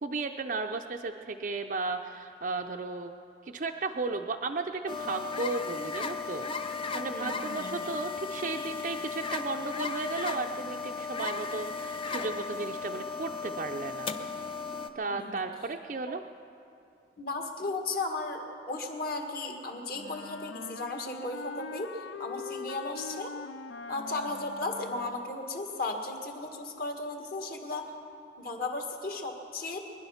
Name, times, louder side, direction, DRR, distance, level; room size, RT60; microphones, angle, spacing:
voice 1, 0.0-3.1 3.4-14.1 14.9-16.2, right 3 dB, 45° right, 3 dB, 0.5 m, -35 dB
sound 1, 4.9-14.9, left 4 dB, 30° left, 0.6 m, -36 dB
voice 2, 7.1-7.9 15.1-15.4 17.2-23.3 23.9-27.9 28.4-29.8, left 2 dB, 50° left, 2 dB, 1.7 m, -35 dB
Wind instrument woodwind instrument, 19.9-25.4, left 4 dB, 80° left, 0.5 m, -42 dB
24.0 x 10.5 x 5.7 m, 2.6 s
head